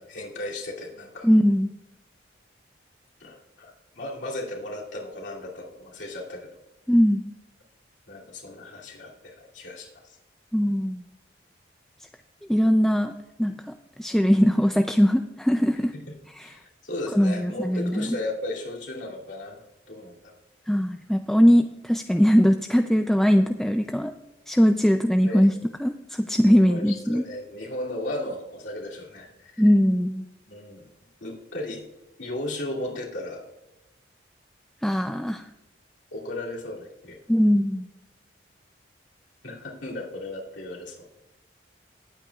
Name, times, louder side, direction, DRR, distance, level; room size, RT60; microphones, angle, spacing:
voice 1, 0.0-1.3 3.2-6.5 8.1-10.2 15.9-16.2 16.4-19.6 19.9-20.4 25.2-25.5 26.4-29.6 30.5-30.8 31.2-31.8 32.2-33.4 36.1-37.2 39.4-41.1, left 1 dB, 75° left, -3 dB, 2.6 m, -35 dB
voice 2, 1.2-1.7 6.9-7.2 10.5-11.0 12.5-13.1 13.4-13.5 14.0-15.9 16.4-16.5 17.1-18.2 20.7-24.1 24.5-25.5 25.8-27.2 29.6-30.2 34.8-35.5 37.3-37.9, equal, ahead, 6 dB, 0.3 m, -20 dB
19.0 x 8.8 x 2.3 m, 0.97 s
head